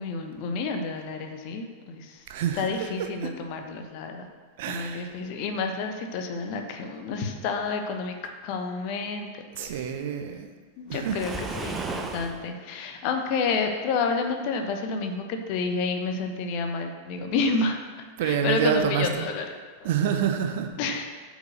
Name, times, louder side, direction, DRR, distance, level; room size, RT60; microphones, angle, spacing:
voice 1, 0.0-2.2 2.6-4.3 4.7-9.3 9.6-9.9 10.8-17.8 18.2-19.4 19.8-19.9 20.8-21.0, left 4 dB, 45° left, 5 dB, 1.1 m, -29 dB
voice 2, 2.3-2.7 3.2-3.3 4.6-5.1 9.6-10.5 10.9-11.2 18.2-19.3 19.8-20.7, right 8 dB, 50° right, 5 dB, 0.9 m, -27 dB
Waves surf, 10.9-12.4, right 3 dB, 15° right, 0.8 m, -34 dB
8.2 x 5.2 x 6.5 m, 1.5 s
figure-of-eight pair, 90°, 0 cm